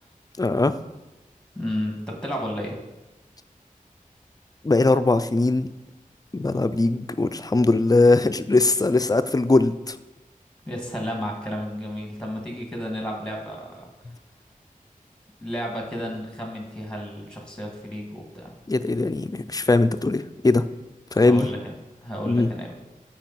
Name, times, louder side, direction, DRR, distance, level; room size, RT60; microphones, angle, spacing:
voice 1, 0.4-0.7 4.6-5.7 6.3-10.0 18.7-20.7 21.1-21.5 22.3-22.5, left 2 dB, 25° left, 11 dB, 0.4 m, -20 dB
voice 2, 1.6-2.8 10.7-13.9 15.4-18.5 21.2-21.7 22.0-22.7, equal, 5° left, 1 dB, 1.8 m, -32 dB
8.7 x 4.5 x 4.1 m, 1.1 s
wide cardioid pair, 55°, 14 cm